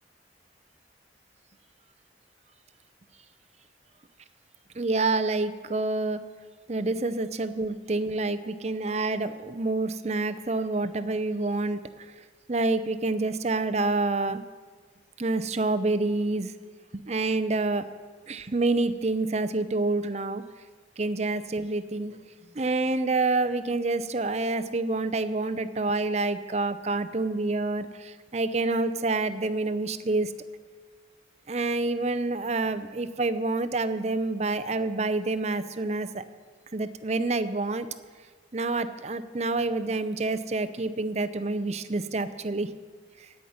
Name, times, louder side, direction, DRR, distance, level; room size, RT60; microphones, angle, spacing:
voice 1, 4.8-6.2 6.7-12.1 12.5-14.4 15.2-16.5 16.9-17.8 18.3-20.4 21.0-22.2 22.5-30.3 31.5-36.2 36.7-37.9 38.5-42.7, right 3 dB, 35° right, 11 dB, 0.6 m, -27 dB
17.0 x 5.8 x 9.4 m, 1.5 s
head